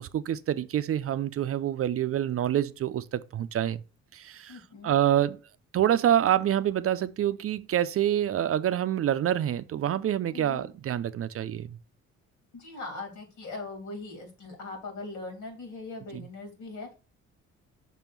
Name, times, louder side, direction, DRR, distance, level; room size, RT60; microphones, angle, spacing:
voice 1, 0.0-3.8 4.1-5.4 5.7-11.8 16.1-16.2, right 11 dB, 50° right, 0.5 m, -27 dB
voice 2, 4.5-5.0 10.3-10.6 12.5-16.9, left 3 dB, 80° left, 3.1 m, -40 dB
6.0 x 3.6 x 5.8 m
cardioid pair, 90°, 30 cm